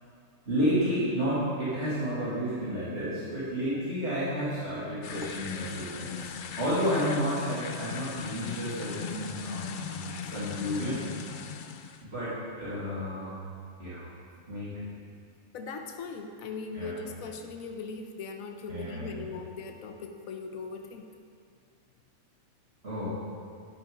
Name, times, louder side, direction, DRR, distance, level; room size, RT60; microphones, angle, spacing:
voice 1, 0.5-11.1 12.0-12.3 12.6-13.5 13.8-14.0 14.5-14.8 16.7-17.0 18.7-19.2 22.8-23.1, equal, 50° right, -12 dB, 2.8 m, -31 dB
sound 1, 5.0-12.0, left 7 dB, 65° left, 0.5 m, -39 dB
voice 2, 15.5-21.1, left 4 dB, 85° left, 4 dB, 1.2 m, -39 dB
10.0 x 9.8 x 3.8 m, 2.4 s
omnidirectional pair, 1.4 m